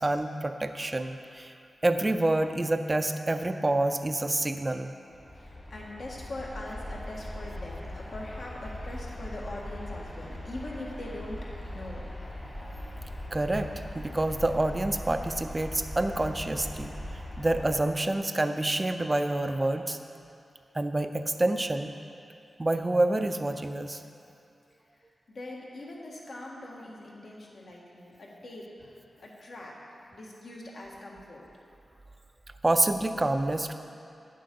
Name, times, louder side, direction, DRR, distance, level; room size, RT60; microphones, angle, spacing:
voice 1, 0.0-1.5 1.8-4.9 13.3-17.0 17.4-20.0 20.7-21.9 22.6-24.0 32.6-33.7, right 2 dB, 25° right, 7 dB, 0.4 m, -27 dB
sound 1, 5.1-17.8, left 1 dB, 25° left, 1.6 m, -40 dB
voice 2, 5.3-11.4 11.7-12.1 25.3-29.7 30.1-31.4, left 1 dB, 65° left, -3 dB, 1.7 m, -42 dB
9.4 x 7.6 x 5.3 m, 2.5 s
wide cardioid pair, 120°, 0 cm